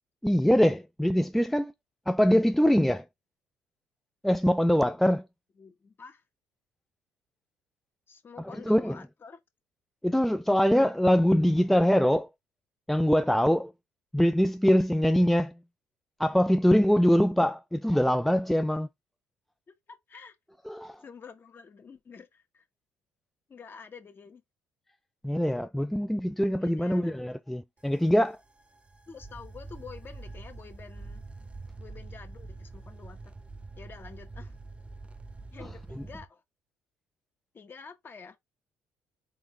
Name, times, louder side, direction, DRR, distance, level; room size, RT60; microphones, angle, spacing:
voice 1, 0.2-1.7 2.1-3.0 4.2-5.3 8.6-9.0 10.0-12.3 12.9-13.7 14.1-15.5 16.2-18.9 20.7-21.0 25.2-28.4 35.9-36.0, equal, 5° left, 0.4 m, -23 dB
voice 2, 5.6-6.2 8.1-9.4 19.7-20.4 21.0-22.6 23.5-24.4 26.6-27.1 29.1-31.2 31.8-33.3 33.8-34.5 35.5-36.4 37.5-38.4, left 5 dB, 40° left, 1.2 m, -48 dB
sound 1, 27.8-36.3, right 3 dB, 20° right, 0.8 m, -45 dB
3.9 x 3.6 x 3.2 m
supercardioid pair, 75°, 6 cm